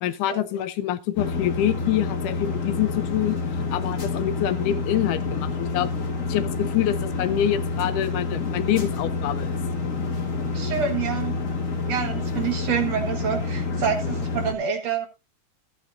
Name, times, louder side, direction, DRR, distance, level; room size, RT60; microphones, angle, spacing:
voice 1, 0.0-3.4 3.7-5.9 6.3-9.6, left 11 dB, 80° left, 13 dB, 2.2 m, -26 dB
sound 1, 1.2-14.5, left 4 dB, 40° left, 1.1 m, -28 dB
voice 2, 10.5-11.3 11.9-15.1, right 7 dB, 60° right, 5 dB, 2.3 m, -27 dB
14.5 x 8.6 x 2.6 m, 0.24 s
omnidirectional pair, 3.7 m